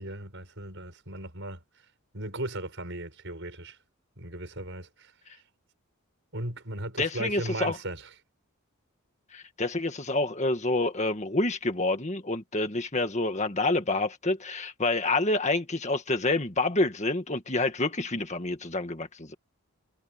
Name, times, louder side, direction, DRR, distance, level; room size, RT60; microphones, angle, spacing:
voice 1, 0.0-1.8 2.1-3.8 4.2-5.4 6.3-8.1, right 1 dB, 55° right, 7.7 m, -37 dB
voice 2, 7.0-7.8 9.3-19.3, left 2 dB, 30° left, 1.8 m, -28 dB
head